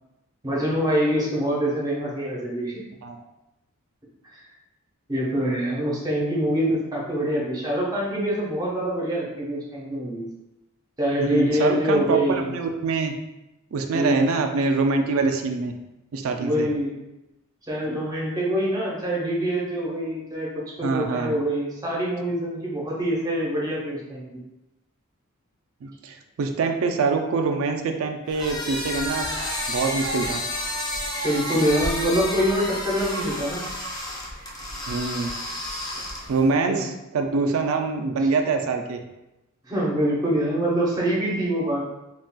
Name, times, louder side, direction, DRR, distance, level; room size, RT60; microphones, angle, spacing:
voice 1, 0.4-2.8 4.2-4.5 5.1-10.3 11.0-12.5 13.9-14.3 16.4-16.9 17.7-20.5 20.8-24.3 31.2-33.6 36.5-36.8 38.2-38.3 39.7-41.8, equal, 20° right, -5 dB, 0.8 m, -25 dB
voice 2, 11.2-13.1 13.7-15.7 16.1-16.7 20.8-21.3 25.8-29.3 29.7-30.4 34.9-35.3 36.3-39.0, right 4 dB, 75° right, 4 dB, 0.4 m, -24 dB
sound 1, 28.3-36.5, left 1 dB, 20° left, 0.5 m, -30 dB
3.7 x 2.3 x 2.3 m, 0.94 s
head